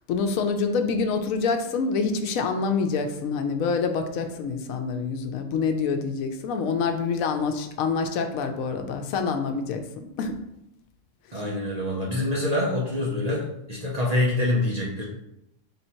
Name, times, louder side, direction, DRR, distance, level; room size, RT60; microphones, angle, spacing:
voice 1, 0.1-9.8 10.2-10.3, left 5 dB, 85° left, 6 dB, 1.0 m, -26 dB
voice 2, 11.3-15.0, left 1 dB, 40° right, -3 dB, 0.6 m, -26 dB
3.6 x 2.7 x 4.3 m, 0.83 s
omnidirectional pair, 1.4 m